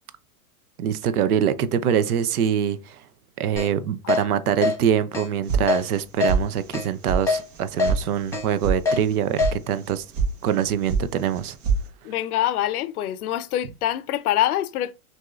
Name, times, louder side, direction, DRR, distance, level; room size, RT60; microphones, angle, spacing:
voice 1, 0.8-3.0 3.4-10.0 10.4-11.6, right 9 dB, 85° right, 0.6 m, -24 dB
Keyboard (musical), 3.6-3.7 4.1-4.2 4.6-4.8 5.1-5.3 5.7-5.8 6.2-6.3 6.7-6.9 7.3-7.4 7.8-7.9 8.3-8.5 8.9-9.0 9.4-9.5, left 4 dB, 5° left, 1.1 m, -22 dB
sound 1, 5.5-6.0 6.3-6.8 7.1-7.2 7.5-8.0 8.3-8.8 9.0-9.5 9.8-10.3 10.6-11.1 11.3-11.8, right 5 dB, 55° right, 1.3 m, -24 dB
voice 2, 12.0-14.9, left 12 dB, 85° left, 0.6 m, -25 dB
5.9 x 2.7 x 2.4 m
hypercardioid pair, 135°, 44 cm